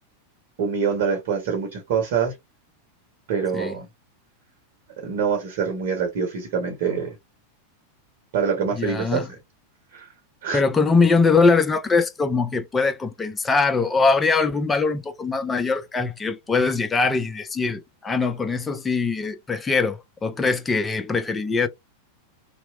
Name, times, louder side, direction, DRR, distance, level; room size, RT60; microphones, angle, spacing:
voice 1, 0.6-2.3 3.3-3.9 5.0-7.2 8.3-9.2 9.9-10.1 10.4-10.6, right 6 dB, 55° right, 0.9 m, -25 dB
voice 2, 8.7-9.3 10.5-21.7, left 4 dB, 15° left, 0.4 m, -22 dB
2.8 x 2.0 x 2.3 m
figure-of-eight pair, 90°, 0 cm